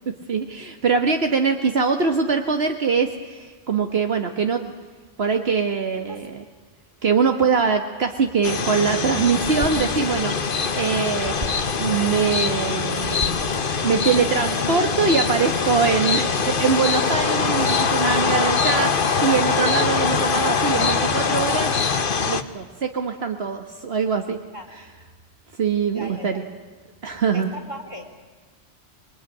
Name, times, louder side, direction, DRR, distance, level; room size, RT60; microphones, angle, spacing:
voice 1, 0.1-4.7 5.2-6.4 7.0-11.3 11.8-13.2 13.8-21.7 22.3-24.4 25.6-26.4 27.0-27.5, right 5 dB, 70° right, 5 dB, 1.6 m, -23 dB
sound 1, 8.4-22.4, left 5 dB, 55° left, 1.3 m, -23 dB
sound 2, 9.4-14.8, equal, 50° right, 5.3 m, -38 dB
voice 2, 25.9-26.4 27.3-28.0, equal, 30° right, 5 dB, 3.7 m, -36 dB
26.5 x 21.5 x 9.8 m, 1.4 s
omnidirectional pair, 1.1 m